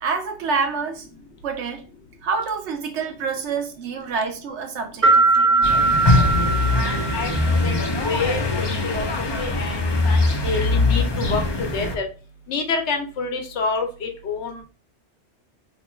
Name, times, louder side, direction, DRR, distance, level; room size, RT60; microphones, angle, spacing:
voice 1, 0.0-1.1 1.4-1.9 2.2-5.7 8.2-8.3, right 5 dB, 75° right, 1.0 m, -27 dB
sound 1, 5.0-7.7, right 3 dB, 15° right, 0.8 m, -20 dB
sound 2, 5.6-12.0, left 2 dB, 45° left, 0.3 m, -22 dB
voice 2, 7.1-7.7 8.0-9.8 10.0-11.4 11.7-12.1 12.5-14.6, left 4 dB, 75° left, 1.0 m, -27 dB
2.9 x 2.2 x 4.1 m
omnidirectional pair, 1.2 m